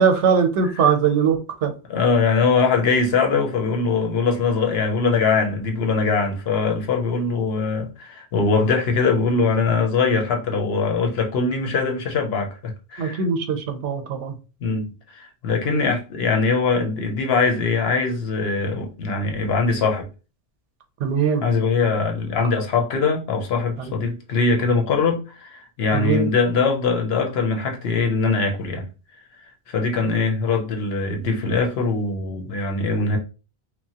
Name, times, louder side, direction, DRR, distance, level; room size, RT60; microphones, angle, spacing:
voice 1, 0.0-1.7 13.0-14.3 21.0-21.4 23.9-24.0 25.9-26.3, right 6 dB, 85° right, 0.9 m, -21 dB
voice 2, 1.9-13.2 14.6-20.1 21.4-28.9 29.7-33.2, left 4 dB, 65° left, 0.8 m, -22 dB
2.9 x 2.1 x 2.7 m
omnidirectional pair, 1.2 m